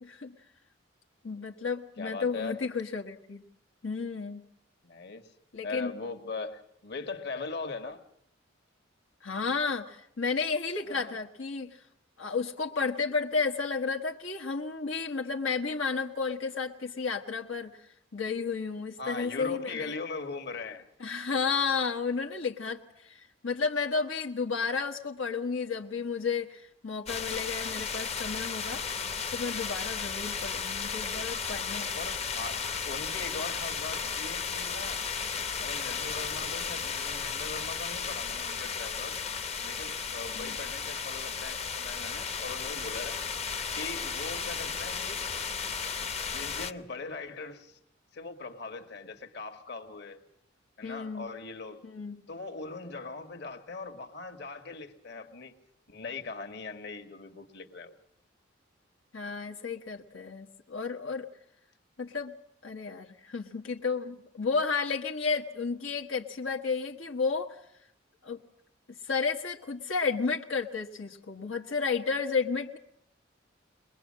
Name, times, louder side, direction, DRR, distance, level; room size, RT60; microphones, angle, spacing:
voice 1, 0.0-0.3 1.2-3.4 3.8-4.5 5.5-5.9 9.2-11.8 12.2-17.7 18.1-19.9 21.0-28.8 29.3-31.9 40.3-40.5 50.8-51.3 51.8-52.2 59.1-61.3 62.0-62.3 62.6-67.5 68.2-68.4 69.0-72.8, left 5 dB, 80° left, 0 dB, 1.5 m, -32 dB
voice 2, 2.0-2.6 4.8-5.3 5.6-8.0 10.9-11.2 19.0-20.9 31.9-35.1 35.6-39.2 39.6-43.2 43.8-45.3 46.2-47.8 48.1-50.2 50.8-51.8 52.3-55.5 55.9-58.0, left 3 dB, 55° left, 6 dB, 1.8 m, -40 dB
sound 1, 27.1-46.7, left 6 dB, 30° left, 0.9 m, -34 dB
22.0 x 22.0 x 7.5 m, 0.73 s
head